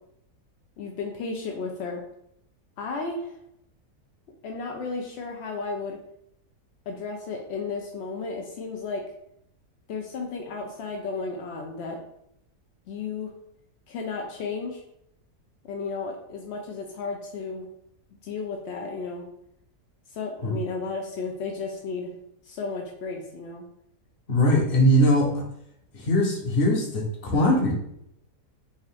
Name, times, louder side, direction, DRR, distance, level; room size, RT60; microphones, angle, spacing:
voice 1, 0.8-2.0 2.8-3.4 4.4-6.0 6.9-9.0 9.9-12.0 12.9-13.3 13.9-14.8 15.6-17.7 18.2-19.2 20.1-22.1 22.4-23.6, left 4 dB, 70° left, 1 dB, 0.6 m, -33 dB
voice 2, 24.3-25.4 25.9-27.7, equal, 40° left, -1 dB, 0.9 m, -21 dB
5.3 x 2.5 x 3.4 m, 0.75 s
omnidirectional pair, 1.7 m